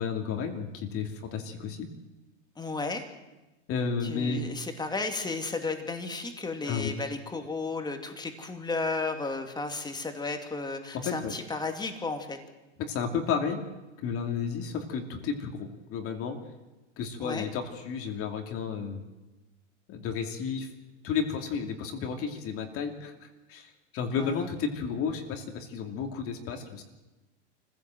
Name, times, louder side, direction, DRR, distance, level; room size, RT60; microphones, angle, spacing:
voice 1, 0.0-1.9 3.7-4.4 6.7-6.9 11.0-11.3 12.8-13.6 14.0-16.4 17.0-19.0 19.9-20.7 21.0-26.8, left 6 dB, 40° left, 4 dB, 2.5 m, -32 dB
voice 2, 2.6-3.0 4.0-12.4 14.6-14.7 17.2-17.5 24.2-24.5, left 3 dB, 10° left, 6 dB, 2.4 m, -33 dB
24.5 x 15.5 x 7.7 m, 1.1 s
supercardioid pair, 125°, 37 cm